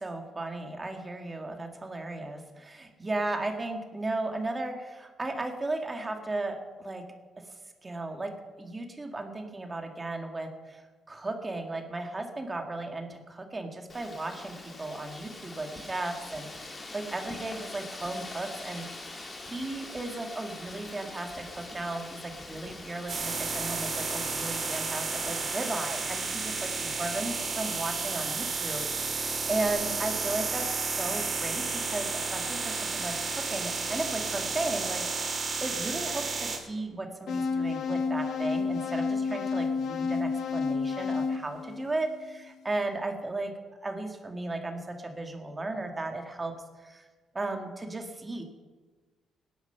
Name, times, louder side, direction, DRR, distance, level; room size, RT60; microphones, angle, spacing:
voice 1, 0.0-7.1 7.4-7.5 7.8-43.5 43.8-47.1 47.3-48.4, right 2 dB, 25° right, 4 dB, 2.1 m, -35 dB
Wind, 13.9-29.7, left 2 dB, 30° left, 2.3 m, -44 dB
sound 1, 23.1-36.6, right 4 dB, 45° right, 3.2 m, -32 dB
sound 2, 37.3-42.4, left 5 dB, 70° left, 1.5 m, -30 dB
17.5 x 10.5 x 5.9 m, 1.3 s
cardioid pair, 90°, 0 cm